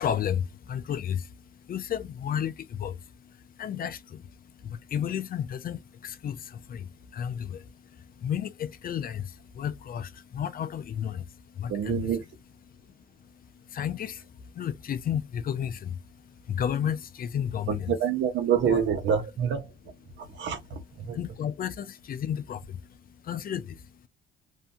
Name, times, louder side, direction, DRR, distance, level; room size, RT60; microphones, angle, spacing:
voice 1, 0.0-12.1 12.7-17.9 18.7-18.8 20.2-20.5 21.0-24.1, left 9 dB, 45° left, 0.4 m, -33 dB
voice 2, 11.7-12.2 17.7-19.7 20.2-21.2, right 8 dB, 70° right, 0.8 m, -27 dB
2.6 x 2.2 x 2.6 m
cardioid pair, 90°, 20 cm